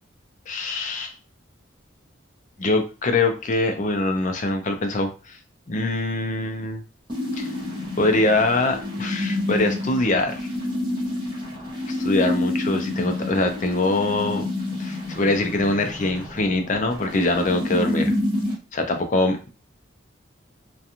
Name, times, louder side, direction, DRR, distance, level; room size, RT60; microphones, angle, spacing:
voice 1, 0.5-1.1 2.6-5.4 5.7-6.8 7.4-7.5 8.0-10.4 11.9-14.5 14.8-18.1 18.7-19.5, left 2 dB, 40° left, 5 dB, 0.4 m, -23 dB
sound 1, 7.1-18.5, left 1 dB, 20° right, 0.9 m, -28 dB
2.4 x 2.3 x 2.8 m, 0.34 s
head